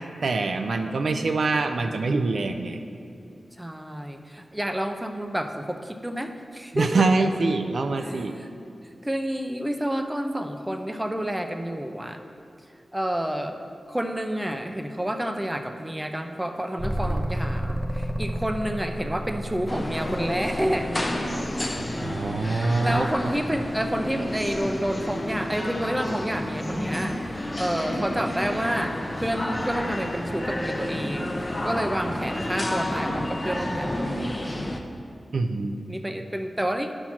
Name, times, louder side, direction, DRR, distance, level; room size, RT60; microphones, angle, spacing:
voice 1, 0.0-2.8 6.7-8.3 22.0-23.1 35.3-35.8, right 3 dB, 70° right, 6 dB, 0.5 m, -25 dB
voice 2, 3.6-7.3 8.0-8.5 9.0-12.2 12.9-13.5 13.9-20.9 22.4-34.6 35.9-37.0, equal, 10° right, 5 dB, 0.6 m, -29 dB
sound 1, 16.8-25.3 27.6-32.1, equal, 30° right, 0.9 m, -35 dB
sound 2, 19.7-34.8, left 1 dB, 25° left, 0.8 m, -30 dB
11.0 x 4.5 x 5.9 m, 2.4 s
wide cardioid pair, 75°, 0 cm